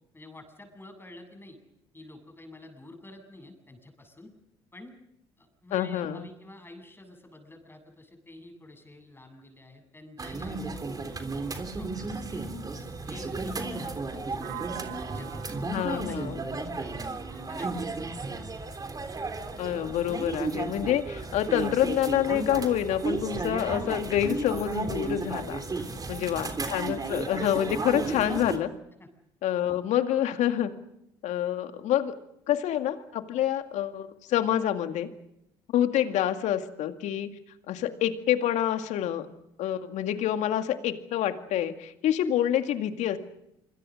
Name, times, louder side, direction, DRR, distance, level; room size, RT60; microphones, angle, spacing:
voice 1, 0.1-1.6 1.9-4.3 4.7-5.0 5.4-10.8 11.3-15.4 15.9-18.4 25.8-26.1 29.0-29.1, left 1 dB, 15° left, 6 dB, 7.9 m, -49 dB
voice 2, 5.7-6.3 15.7-16.4 19.6-25.6 26.1-28.7 29.4-30.7 31.2-32.2 32.5-35.1 35.7-37.3 37.7-39.3 39.6-43.2, left 11 dB, 60° left, 8 dB, 2.1 m, -27 dB
sound 1, 10.2-28.6, right 3 dB, 30° right, 3.5 m, -34 dB
sound 2, 14.4-18.3, right 16 dB, 70° right, 1.8 m, -45 dB
26.0 x 25.0 x 6.5 m, 0.82 s
hypercardioid pair, 55°, 13 cm